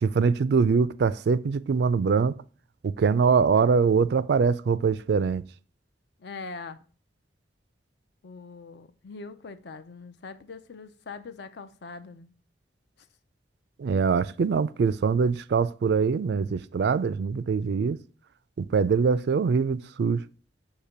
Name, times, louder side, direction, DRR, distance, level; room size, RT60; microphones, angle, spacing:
voice 1, 0.0-2.4 2.8-5.4 13.8-18.0 18.6-20.2, right 5 dB, 65° right, 0.3 m, -23 dB
voice 2, 6.2-6.8 8.2-12.3 13.0-13.1, left 4 dB, 65° left, 0.5 m, -42 dB
6.6 x 2.9 x 5.7 m
head